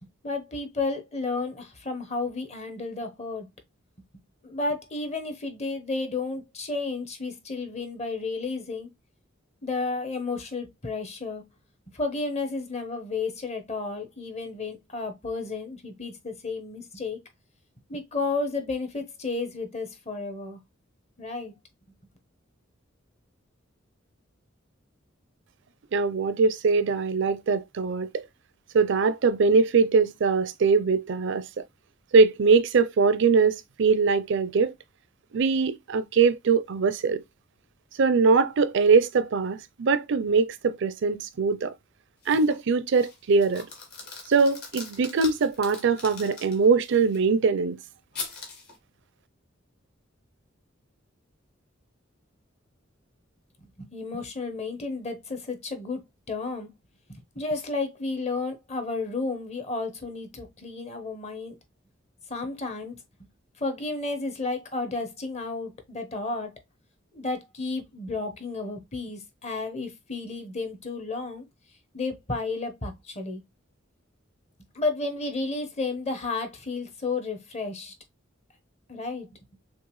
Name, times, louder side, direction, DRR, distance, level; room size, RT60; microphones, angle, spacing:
voice 1, 0.2-3.5 4.4-8.9 9.6-11.4 11.9-17.2 17.9-20.6 21.2-21.5 53.8-56.0 56.3-56.7 57.1-61.6 62.3-63.0 63.6-66.5 67.1-71.5 71.9-73.4 74.7-77.9 78.9-79.3, left 3 dB, 35° left, 1.0 m, -32 dB
voice 2, 25.9-28.2 28.7-31.4 32.1-34.7 35.3-37.2 38.0-41.7 42.3-43.7 44.3-47.8, right 4 dB, 65° right, 0.5 m, -22 dB
sound 1, 42.2-42.6 42.9-47.2 48.1-48.8, left 4 dB, 55° left, 1.8 m, -41 dB
6.3 x 2.4 x 3.1 m
head